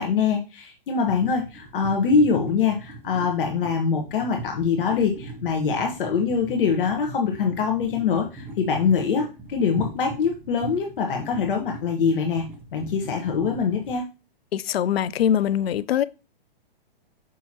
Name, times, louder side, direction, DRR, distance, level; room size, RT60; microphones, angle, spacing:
voice 1, 0.0-12.4 12.7-14.1, left 5 dB, 65° left, 1.3 m, -24 dB
sound 1, 1.0-14.0, right 2 dB, 5° right, 0.4 m, -40 dB
voice 2, 14.5-16.0, left 10 dB, 90° left, 0.5 m, -22 dB
6.3 x 5.6 x 2.9 m
hypercardioid pair, 155°, 29 cm